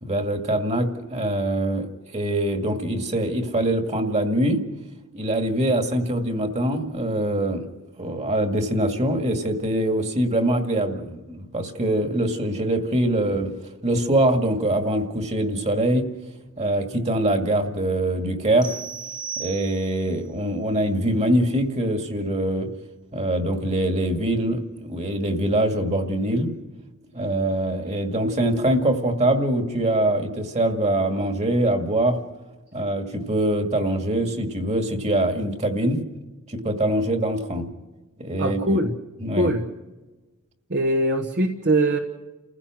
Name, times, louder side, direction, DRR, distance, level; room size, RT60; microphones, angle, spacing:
voice 1, 0.0-1.9 2.1-4.6 5.1-7.7 8.0-13.5 13.8-16.1 16.6-18.7 19.4-22.7 23.1-26.5 27.1-32.2 32.7-36.0 36.5-37.6 38.2-38.8 39.2-39.5, right 1 dB, 30° right, 5 dB, 2.2 m, -23 dB
sound 1, 18.6-20.2, right 6 dB, 5° right, 1.5 m, -35 dB
voice 2, 38.4-39.0 39.4-39.7 40.7-42.0, right 1 dB, 50° right, 4 dB, 1.3 m, -22 dB
30.0 x 16.0 x 6.3 m, 1.2 s
head